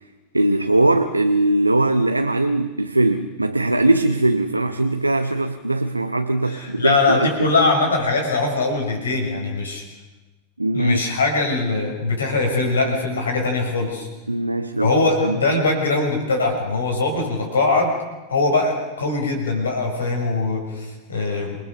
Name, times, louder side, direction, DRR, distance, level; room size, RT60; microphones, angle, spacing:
voice 1, 0.3-7.3 10.6-11.0 14.3-14.9 15.2-15.4, right 2 dB, 85° right, 7 dB, 1.0 m, -20 dB
voice 2, 6.4-9.8 10.7-14.1 14.8-18.0 18.3-21.6, left 3 dB, 70° left, 2 dB, 6.2 m, -21 dB
27.5 x 20.0 x 6.9 m, 1.1 s
figure-of-eight pair, 90°, 0 cm